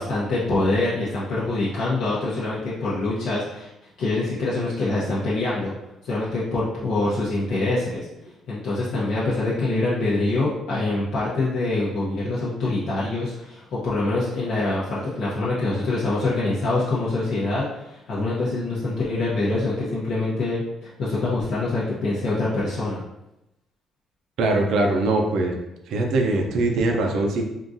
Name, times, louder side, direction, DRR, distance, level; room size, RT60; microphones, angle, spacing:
voice 1, 0.0-3.7 4.0-5.7 6.0-8.1 8.5-23.1, left 2 dB, 65° left, -8 dB, 0.7 m, -25 dB
voice 2, 24.4-25.6 25.9-27.4, right 2 dB, 65° right, 2 dB, 0.5 m, -22 dB
3.7 x 2.4 x 2.6 m, 0.89 s
cardioid pair, 140°, 0 cm